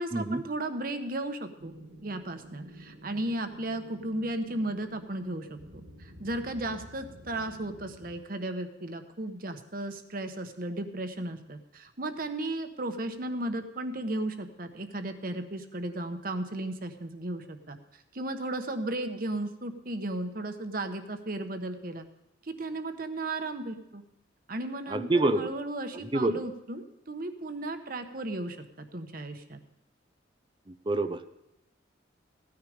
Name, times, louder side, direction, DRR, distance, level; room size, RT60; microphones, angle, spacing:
voice 1, 0.0-1.7 2.0-17.8 18.1-22.0 22.4-24.0 24.5-28.6 28.9-29.6, right 1 dB, 50° right, 8 dB, 1.0 m, -35 dB
sound 1, 1.6-8.2, equal, 65° right, 2.0 m, -50 dB
voice 2, 24.9-25.5 26.0-26.4 30.7-31.2, right 2 dB, 25° right, 11 dB, 0.5 m, -27 dB
15.5 x 9.7 x 5.0 m, 0.89 s
head